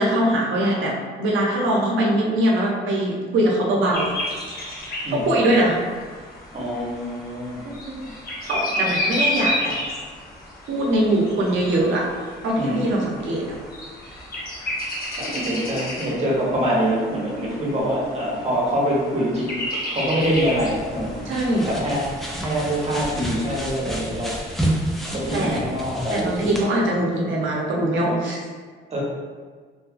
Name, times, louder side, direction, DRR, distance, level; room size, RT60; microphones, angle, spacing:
voice 1, 0.0-4.1 5.1-5.8 7.9-8.0 8.4-9.7 10.7-12.0 12.4-13.5 15.3-15.5 21.3-21.7 25.3-25.6 26.1-28.4, right 1 dB, 75° right, -2 dB, 0.6 m, -22 dB
sound 1, 3.9-23.6, left 1 dB, 50° left, 0.7 m, -32 dB
voice 2, 6.5-7.6 12.6-13.0 15.1-21.2 21.7-24.4 25.1-26.5 28.9-29.0, equal, 35° right, -5 dB, 0.9 m, -25 dB
sound 2, 20.2-26.6, right 1 dB, ahead, 0.4 m, -30 dB
2.5 x 2.4 x 2.4 m, 1.6 s
cardioid pair, 90°, 20 cm